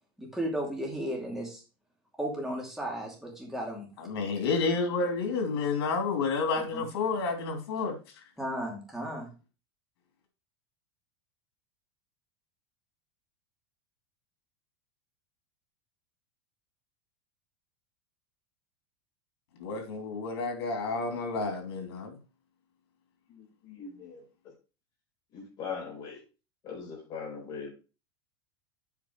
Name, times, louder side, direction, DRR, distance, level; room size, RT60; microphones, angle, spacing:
voice 1, 0.2-1.6 2.2-3.9 6.7-6.8 8.4-9.3, right 1 dB, 5° right, 2.6 m, -34 dB
voice 2, 4.0-7.9 19.6-22.2, left 4 dB, 85° left, 2.9 m, -30 dB
voice 3, 23.3-24.2 25.3-26.2 26.6-27.7, left 5 dB, 35° left, 4.5 m, -40 dB
8.3 x 5.2 x 4.6 m
supercardioid pair, 155°, 13 cm